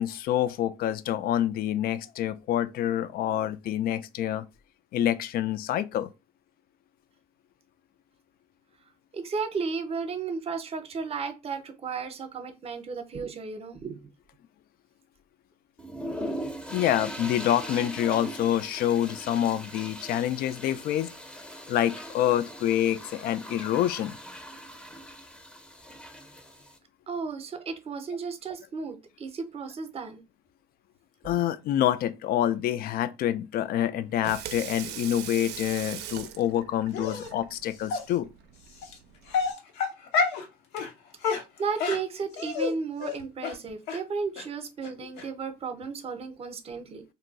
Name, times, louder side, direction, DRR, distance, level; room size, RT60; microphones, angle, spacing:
voice 1, 0.0-4.4 4.9-6.1 16.7-21.1 21.7-24.1 31.2-38.3, left 11 dB, 60° left, 0.4 m, -27 dB
voice 2, 9.1-14.0 27.1-30.2 41.6-47.0, right 5 dB, 35° right, 0.7 m, -34 dB
sound 1, 15.8-26.8, equal, 5° left, 0.6 m, -40 dB
Water tap faucet / Sink (filling or washing), 34.0-39.5, right 11 dB, 80° right, 0.5 m, -41 dB
Dog, 36.9-37.3 37.9-38.0 38.8-38.9 39.3-40.4 40.7-40.9 41.2-42.7 43.0-43.2 43.4-43.5 43.9-44.0 44.4-44.5 44.8-44.9 45.2-45.3, left 5 dB, 90° left, 0.8 m, -28 dB
2.6 x 2.2 x 3.9 m
cardioid pair, 110°, 17 cm